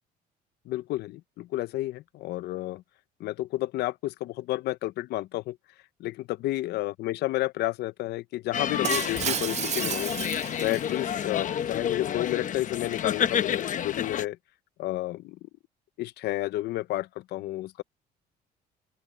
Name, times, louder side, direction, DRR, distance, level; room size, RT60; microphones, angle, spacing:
voice 1, 0.7-2.8 3.2-5.6 6.0-10.1 10.6-14.4 14.8-15.4 16.0-17.8, left 16 dB, 75° left, 0.6 m, -31 dB
sound 1, 8.5-14.3, left 9 dB, 50° left, 1.0 m, -30 dB
Shatter, 8.8-11.2, right 10 dB, 40° right, 0.5 m, -32 dB
open air
cardioid pair, 110°, 17 cm